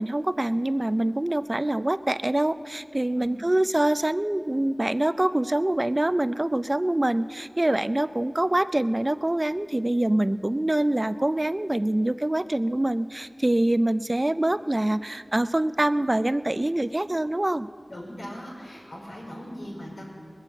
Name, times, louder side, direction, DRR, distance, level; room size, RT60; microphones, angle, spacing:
voice 1, 0.0-17.7, right 1 dB, 30° right, 14 dB, 0.4 m, -25 dB
voice 2, 17.9-20.1, equal, 85° left, -4 dB, 4.8 m, -39 dB
20.5 x 7.6 x 7.7 m, 2.5 s
wide cardioid pair, 50°, 0 cm